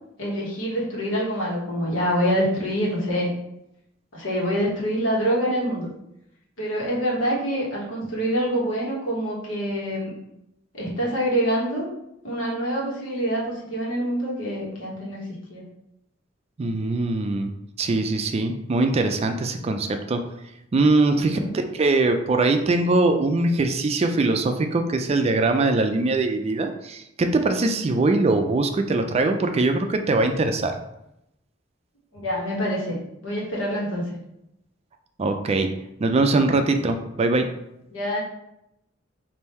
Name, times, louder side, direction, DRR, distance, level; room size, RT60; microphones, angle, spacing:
voice 1, 0.2-3.3 4.1-5.9 6.6-10.1 10.7-11.8 12.2-15.2 15.5-15.6 21.1-21.6 32.1-34.1 37.9-38.2, equal, 75° left, -4 dB, 1.4 m, -26 dB
voice 2, 16.6-17.5 17.8-20.2 20.7-30.7 35.2-35.7 36.0-37.5, right 2 dB, 30° right, 6 dB, 0.3 m, -22 dB
3.5 x 2.6 x 4.2 m, 0.83 s
head